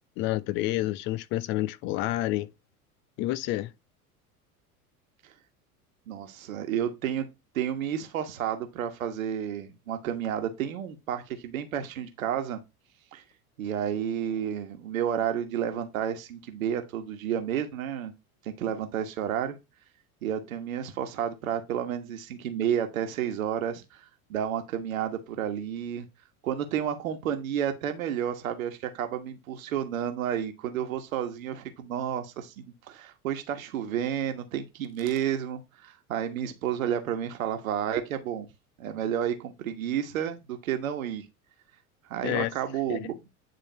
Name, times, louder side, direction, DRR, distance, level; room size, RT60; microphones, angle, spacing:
voice 1, 0.2-2.5 3.2-3.7 42.2-42.5 42.9-43.0, left 16 dB, 30° left, 0.4 m, -29 dB
voice 2, 6.1-7.3 7.5-12.6 13.1-13.2 13.6-18.1 18.4-19.6 20.2-24.0 24.3-26.1 26.4-38.5 38.8-41.3 42.1-43.2, right 9 dB, 60° right, 1.4 m, -31 dB
9.5 x 3.8 x 4.2 m
figure-of-eight pair, 80°, 45 cm